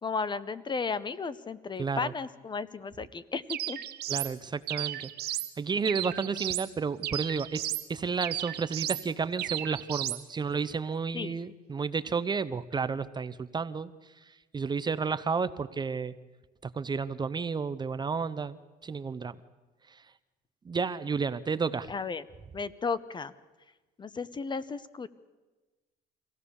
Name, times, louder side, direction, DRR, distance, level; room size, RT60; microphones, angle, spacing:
voice 1, 0.0-3.8 11.1-11.4 21.9-22.2 22.5-23.3 24.0-25.1, left 5 dB, 25° left, 16 dB, 0.8 m, -34 dB
voice 2, 1.8-2.1 4.1-13.9 14.5-16.1 16.6-19.4 20.6-21.9, right 5 dB, 25° right, 14 dB, 0.6 m, -32 dB
sound 1, 3.5-4.3 4.7-5.5 5.8-6.7 7.0-7.9 8.2-9.0 9.4-10.2, right 13 dB, 70° right, 1.0 m, -34 dB
24.5 x 16.0 x 7.0 m, 1.2 s
cardioid pair, 110°, 17 cm